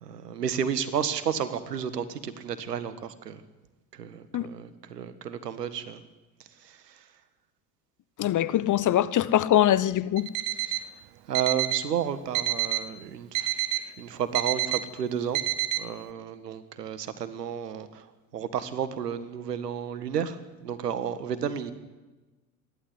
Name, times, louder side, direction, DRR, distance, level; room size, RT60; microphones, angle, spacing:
voice 1, 0.0-3.4 3.9-6.0 6.6-7.0 10.7-10.9 11.3-15.4 15.7-21.7, right 8 dB, 85° right, 1.6 m, -32 dB
voice 2, 8.2-10.3, left 12 dB, 40° left, 1.0 m, -23 dB
Alarm, 10.2-10.9 11.3-11.9 12.3-12.9 13.3-13.9 14.3-14.8 15.3-15.8, right 14 dB, 60° right, 1.2 m, -28 dB
27.0 x 12.0 x 9.7 m
hypercardioid pair, 65°, 47 cm